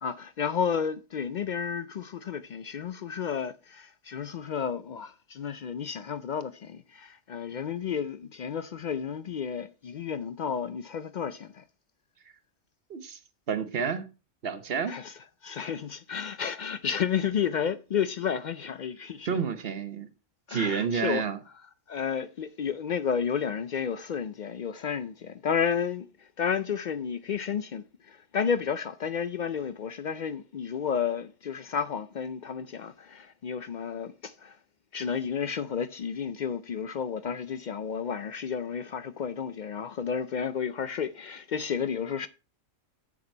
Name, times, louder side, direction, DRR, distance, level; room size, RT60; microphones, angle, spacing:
voice 1, 0.0-11.6 14.9-15.1 15.4-19.4 20.5-21.2 21.9-34.6 34.9-42.3, left 7 dB, 65° left, 0.4 m, -32 dB
voice 2, 12.9-13.2 13.5-14.1 14.4-15.0 19.2-20.1 20.5-21.4, right 6 dB, 55° right, 1.1 m, -29 dB
7.8 x 6.6 x 4.4 m
omnidirectional pair, 1.3 m